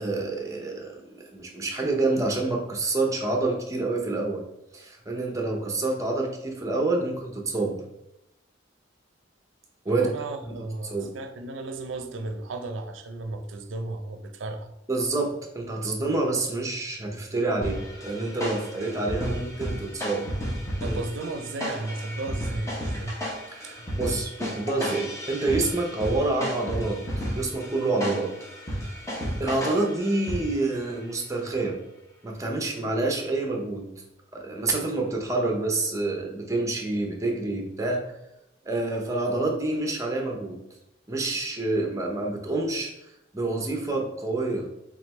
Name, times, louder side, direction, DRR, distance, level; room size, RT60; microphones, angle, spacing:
voice 1, 0.0-4.4 4.7-7.8 9.8-10.1 10.4-10.6 10.9-11.1 14.9-20.3 20.9-21.0 23.5-27.0 27.3-28.3 29.4-31.8 32.2-33.9 34.3-38.1 38.6-40.6 41.1-42.9 43.3-44.7, right 2 dB, 20° right, 0.7 m, -27 dB
voice 2, 9.9-14.7 20.8-23.2 23.6-23.8, right 2 dB, 90° right, 0.5 m, -34 dB
sound 1, 17.6-30.8, equal, 15° left, 0.8 m, -33 dB
3.5 x 3.3 x 3.0 m
head